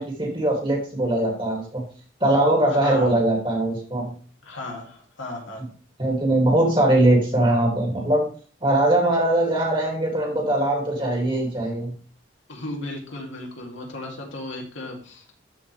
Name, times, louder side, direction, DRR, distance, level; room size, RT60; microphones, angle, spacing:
voice 1, 0.0-1.8 2.2-4.1 6.0-8.2 8.6-11.9, right 1 dB, 25° right, 0 dB, 2.3 m, -21 dB
voice 2, 2.8-3.2 4.4-5.7 12.5-15.3, left 2 dB, 75° left, -1 dB, 2.4 m, -35 dB
12.5 x 4.8 x 3.3 m, 0.40 s
head